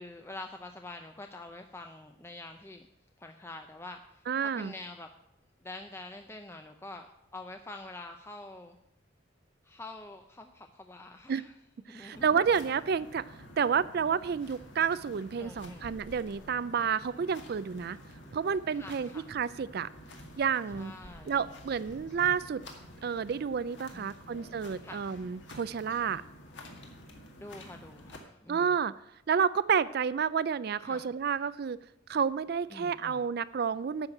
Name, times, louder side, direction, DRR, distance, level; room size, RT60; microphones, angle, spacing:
voice 1, 0.0-2.9 3.2-5.1 5.6-7.1 7.3-8.8 9.6-11.5 11.9-12.4 15.4-15.9 18.7-19.3 20.8-21.4 23.9-24.5 24.8-25.1 27.3-28.8 30.8-31.1 32.7-33.2, left 2 dB, 10° left, 5 dB, 0.5 m, -46 dB
voice 2, 4.3-4.7 11.3-11.4 11.9-13.2 13.6-18.0 18.3-19.9 20.4-20.9 21.3-22.6 23.0-26.2 28.5-28.9 29.3-31.8 32.1-34.1, right 6 dB, 50° right, 17 dB, 0.4 m, -30 dB
sound 1, 12.1-28.2, equal, 60° left, 1.9 m, -50 dB
9.6 x 6.5 x 8.5 m, 0.81 s
head